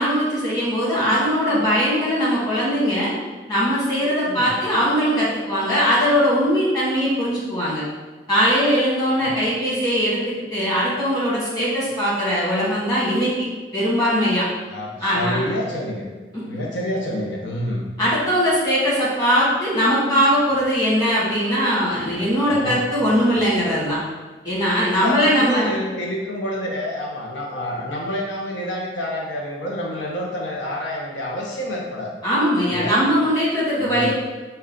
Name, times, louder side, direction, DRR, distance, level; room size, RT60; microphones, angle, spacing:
voice 1, 0.0-3.1 3.5-7.8 8.3-10.2 10.5-13.3 13.7-14.5 15.0-15.4 18.0-24.0 24.4-25.7 32.2-34.1, equal, 20° left, -8 dB, 1.4 m, -20 dB
voice 2, 4.2-4.5 9.2-9.4 14.7-16.0 16.5-17.9 22.1-23.4 25.0-32.2 32.6-33.0 33.8-34.1, left 1 dB, 90° left, -1 dB, 0.6 m, -28 dB
5.3 x 2.2 x 3.7 m, 1.3 s
head